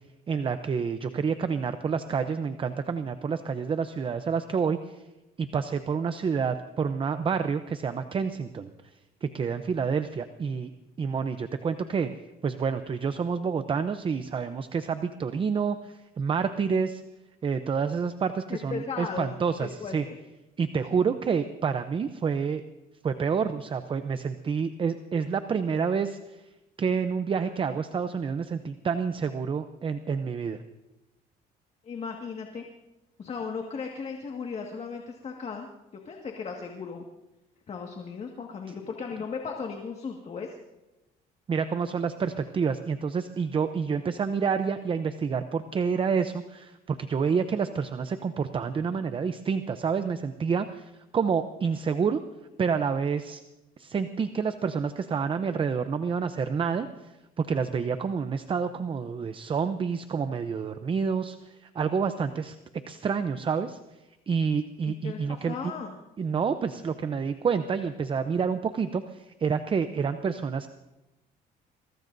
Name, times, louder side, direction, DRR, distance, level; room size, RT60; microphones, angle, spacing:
voice 1, 0.3-5.0 5.4-8.7 9.2-10.7 11.0-12.1 12.4-17.0 17.4-20.0 20.6-22.6 23.0-26.4 26.8-30.6 41.5-52.2 52.6-53.4 53.8-62.6 62.9-63.8 64.3-65.7 66.2-70.7, right 6 dB, 30° right, 10 dB, 0.7 m, -28 dB
voice 2, 18.5-20.2 20.9-21.0 31.8-32.6 33.2-35.7 36.1-37.0 37.7-40.6 64.8-65.9, left 5 dB, 40° left, 2 dB, 1.9 m, -36 dB
23.0 x 22.5 x 2.7 m, 1.0 s
cardioid pair, 110°, 17 cm